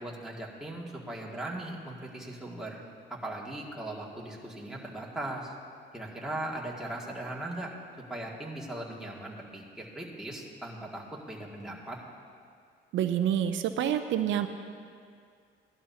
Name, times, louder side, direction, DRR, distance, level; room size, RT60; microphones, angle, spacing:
voice 1, 0.0-2.8 3.1-5.5 5.9-7.7 8.1-12.0, right 1 dB, 5° right, -4 dB, 2.0 m, -39 dB
voice 2, 12.9-14.5, right 10 dB, 75° right, 8 dB, 0.5 m, -27 dB
17.0 x 11.5 x 2.8 m, 2.2 s
cardioid pair, 90°, 20 cm